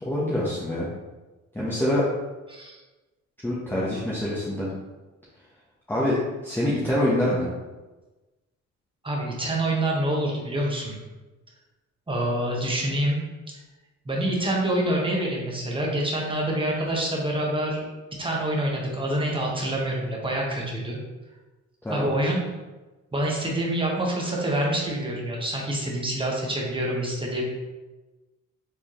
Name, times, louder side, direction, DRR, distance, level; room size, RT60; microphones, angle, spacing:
voice 1, 0.0-0.9 1.5-2.0 3.4-4.7 5.9-6.2 6.4-7.5 21.8-22.1, left 1 dB, 5° left, -7 dB, 1.0 m, -25 dB
voice 2, 9.0-11.0 12.1-13.3 14.0-17.9 18.2-21.0 21.9-22.4 23.1-27.4, right 1 dB, 15° right, -2 dB, 1.2 m, -26 dB
4.7 x 3.3 x 3.1 m, 1.2 s
cardioid pair, 90°, 30 cm